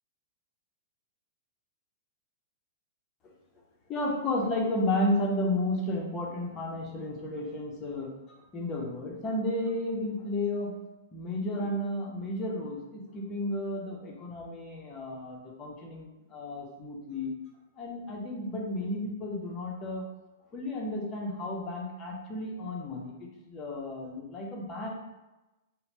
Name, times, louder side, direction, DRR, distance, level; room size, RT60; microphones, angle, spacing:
voice 1, 3.9-8.1 8.5-10.7 11.1-17.3 17.8-20.0 20.5-24.9, left 1 dB, 25° left, -2 dB, 0.7 m, -32 dB
2.8 x 2.1 x 2.8 m, 1.0 s
hypercardioid pair, 135°, 0 cm